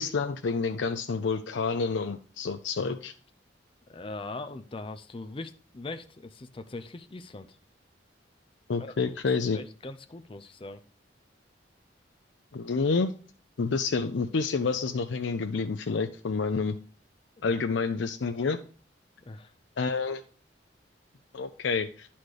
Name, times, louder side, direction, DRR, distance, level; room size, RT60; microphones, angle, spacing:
voice 1, 0.0-3.1 8.7-9.6 12.5-13.1 13.6-16.8 17.4-18.6 19.8-20.2 21.3-22.1, left 4 dB, 90° left, 7 dB, 0.5 m, -28 dB
voice 2, 3.9-7.6 8.8-9.1 9.5-10.8 17.4-17.6 19.3-19.5, left 2 dB, 30° left, 8 dB, 0.5 m, -41 dB
10.5 x 4.3 x 4.7 m, 0.40 s
head